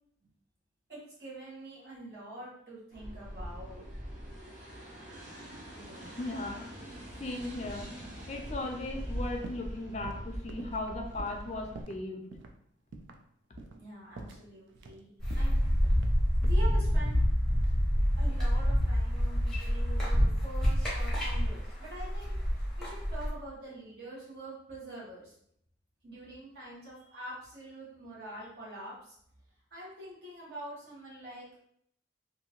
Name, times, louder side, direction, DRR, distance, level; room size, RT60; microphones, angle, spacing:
voice 1, 0.9-3.9 5.7-6.1 13.7-15.6 16.4-17.2 18.2-22.4 22.8-25.3 26.0-29.1 29.7-31.4, right 1 dB, 55° right, -6 dB, 1.2 m, -45 dB
sound 1, 2.9-11.8, equal, 40° right, 0.7 m, -42 dB
voice 2, 6.0-6.7 7.2-7.9 8.3-12.2, left 2 dB, 35° left, 2 dB, 0.4 m, -37 dB
sound 2, 9.4-9.7 10.0-12.0 12.3-12.6 12.9-13.2 13.6-13.9 14.2-15.0 15.3-16.7 17.6-18.5 18.8-19.3, right 3 dB, 75° right, 0.3 m, -48 dB
sound 3, 15.2-23.3, equal, ahead, 0.7 m, -27 dB
2.7 x 2.6 x 2.9 m, 0.69 s
head